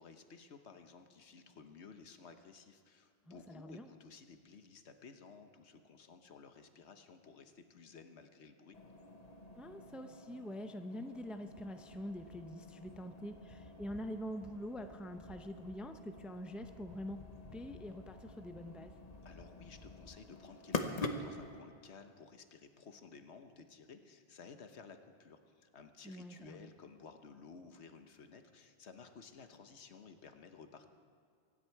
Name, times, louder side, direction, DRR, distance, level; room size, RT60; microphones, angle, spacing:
voice 1, 0.0-8.8 19.2-30.9, left 5 dB, 85° left, 7 dB, 1.3 m, -55 dB
voice 2, 3.5-3.9 9.6-17.2 17.5-18.9 26.0-26.7, equal, ahead, 7 dB, 0.5 m, -45 dB
sound 1, 8.7-21.6, left 2 dB, 40° left, 1.0 m, -46 dB
24.0 x 10.5 x 4.6 m, 2.3 s
omnidirectional pair, 1.1 m